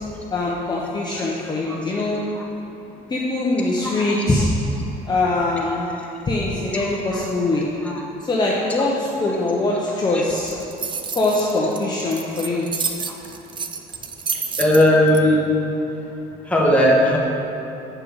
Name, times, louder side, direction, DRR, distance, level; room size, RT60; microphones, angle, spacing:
voice 1, 0.3-2.2 3.1-4.5 5.1-5.9 6.3-7.6 8.3-10.5 11.1-12.7, left 2 dB, 25° left, -4 dB, 0.9 m, -22 dB
sound 1, 10.4-15.2, right 5 dB, 30° right, 0.5 m, -29 dB
voice 2, 14.6-15.4 16.5-17.2, left 1 dB, 5° left, -3 dB, 1.4 m, -17 dB
7.8 x 6.0 x 4.7 m, 2.9 s
cardioid pair, 110°, 17 cm